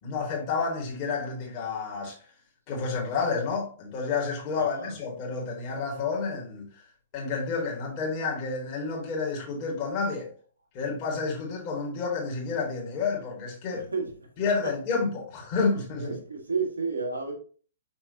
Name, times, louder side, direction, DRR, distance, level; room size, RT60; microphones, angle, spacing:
voice 1, 0.0-2.2 2.7-6.8 7.1-10.3 10.7-13.9 14.4-16.2, left 4 dB, 35° left, 2.2 m, -30 dB
voice 2, 4.5-4.9 13.7-14.1 14.6-14.7 16.0-17.3, right 4 dB, 80° right, 1.9 m, -31 dB
6.1 x 5.7 x 2.8 m
figure-of-eight pair, 115°, 0 cm